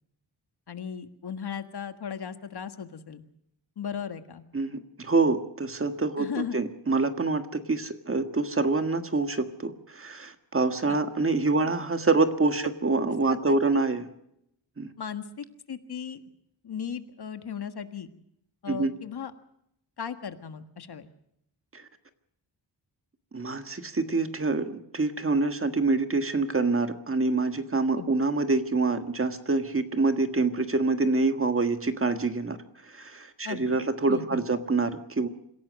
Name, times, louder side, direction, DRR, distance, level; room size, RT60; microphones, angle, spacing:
voice 1, 0.7-3.2 3.8-4.4 6.2-6.6 10.9-11.0 11.5-11.7 12.9-13.9 15.0-16.2 16.6-18.1 18.6-19.3 20.0-21.1 28.0-28.1 33.4-33.8 34.1-34.4, left 7 dB, 60° left, 9 dB, 1.6 m, -37 dB
voice 2, 4.5-14.1 14.8-14.9 18.7-18.9 21.7-21.8 23.3-32.6 32.8-35.3, right 3 dB, 30° right, 8 dB, 1.6 m, -26 dB
26.5 x 16.5 x 6.3 m, 0.77 s
wide cardioid pair, 145°, 43 cm